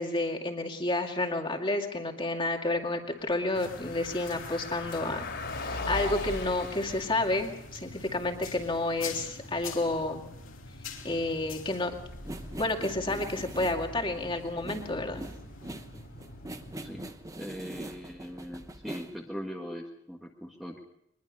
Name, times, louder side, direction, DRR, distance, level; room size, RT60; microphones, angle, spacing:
voice 1, 0.0-5.3 5.6-10.2 11.0-11.9 12.6-15.2, left 2 dB, 25° left, 2 dB, 2.3 m, -30 dB
Car passing by, 2.9-19.0, left 2 dB, 55° left, 3.4 m, -43 dB
sound 1, 3.5-17.1, left 3 dB, 70° left, 3.0 m, -46 dB
sound 2, 12.1-19.3, right 1 dB, 15° right, 1.0 m, -43 dB
voice 2, 17.4-20.8, equal, ahead, -2 dB, 1.6 m, -40 dB
22.5 x 21.5 x 5.4 m, 0.77 s
head